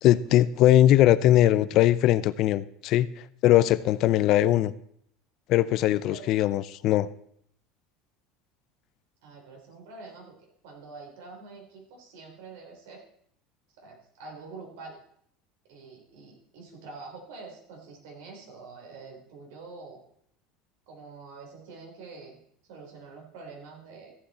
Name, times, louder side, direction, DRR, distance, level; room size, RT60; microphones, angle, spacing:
voice 1, 0.0-3.1 3.4-4.7 5.5-7.1, left 13 dB, 55° left, 16 dB, 0.5 m, -20 dB
voice 2, 6.0-6.4 9.2-10.4 10.6-13.0 13.8-15.0 15.7-20.0 20.9-24.1, right 4 dB, 80° right, 1 dB, 3.9 m, -46 dB
14.5 x 8.3 x 4.3 m, 0.68 s
supercardioid pair, 135°, 0 cm